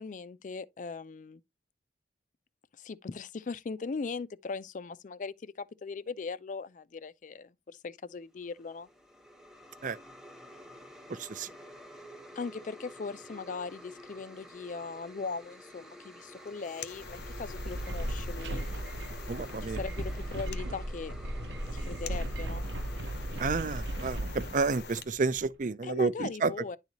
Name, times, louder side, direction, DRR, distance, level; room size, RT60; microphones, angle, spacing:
voice 1, 0.0-1.4 2.8-8.9 12.4-18.7 19.6-21.1 21.7-22.7 25.8-26.8, left 4 dB, 45° left, 0.4 m, -39 dB
sound 1, 8.4-24.8, equal, 5° right, 0.9 m, -51 dB
voice 2, 11.1-11.5 19.3-19.8 23.4-24.2 24.5-26.5, right 4 dB, 45° right, 0.5 m, -30 dB
sound 2, 16.3-25.1, left 7 dB, 65° left, 0.8 m, -47 dB
sound 3, 16.9-25.5, right 1 dB, 80° right, 0.8 m, -36 dB
10.5 x 4.0 x 2.9 m
head